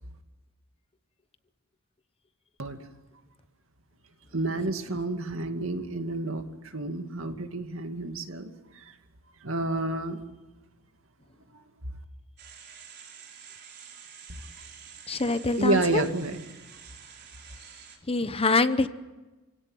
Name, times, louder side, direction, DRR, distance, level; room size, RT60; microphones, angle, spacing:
voice 1, 4.3-8.9 9.4-10.2 11.5-11.6 14.3-14.4 15.6-16.4, right 2 dB, 65° right, 6 dB, 2.3 m, -30 dB
sound 1, 12.4-18.0, right 7 dB, 50° right, 4.4 m, -48 dB
voice 2, 15.1-16.0 18.1-18.9, left 3 dB, 25° left, 12 dB, 0.9 m, -24 dB
30.0 x 17.0 x 9.2 m, 1.2 s
head